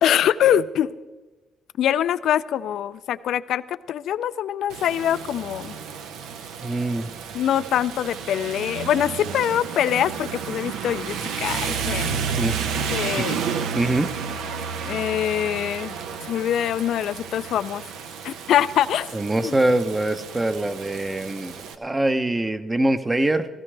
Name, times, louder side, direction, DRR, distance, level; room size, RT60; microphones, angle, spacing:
voice 1, 0.0-0.9 1.8-5.8 7.3-12.2 12.9-13.4 14.9-16.0 16.2-17.8 18.2-19.1 19.4-19.5, left 10 dB, 75° left, 15 dB, 0.4 m, -24 dB
Rain, 4.7-21.7, right 6 dB, 90° right, 0.7 m, -31 dB
voice 2, 6.6-7.1 12.4-12.6 13.2-13.3 13.7-14.1 19.1-23.5, right 1 dB, 20° right, 10 dB, 0.7 m, -23 dB
16.0 x 15.0 x 3.3 m, 1.2 s
cardioid pair, 90°, 0 cm